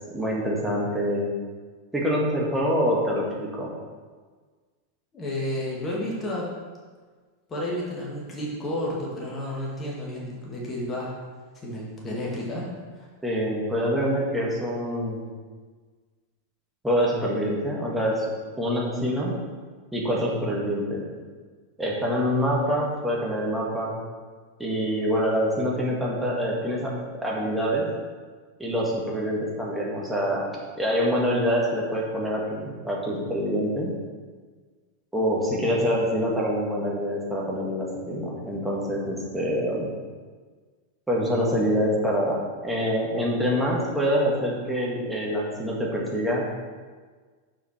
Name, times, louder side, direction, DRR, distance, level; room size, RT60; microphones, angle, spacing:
voice 1, 0.1-1.3 1.9-3.7 13.2-15.2 16.8-18.3 18.6-19.3 19.9-21.0 21.8-24.0 24.6-26.9 27.2-27.9 28.6-30.5 30.8-33.9 35.1-39.9 41.1-46.5, equal, 5° right, -4 dB, 1.9 m, -25 dB
voice 2, 5.1-6.5 7.5-11.1 11.6-13.1 35.6-35.9, left 1 dB, 20° left, -4 dB, 2.0 m, -31 dB
7.1 x 5.9 x 4.5 m, 1.5 s
figure-of-eight pair, 90°, 0 cm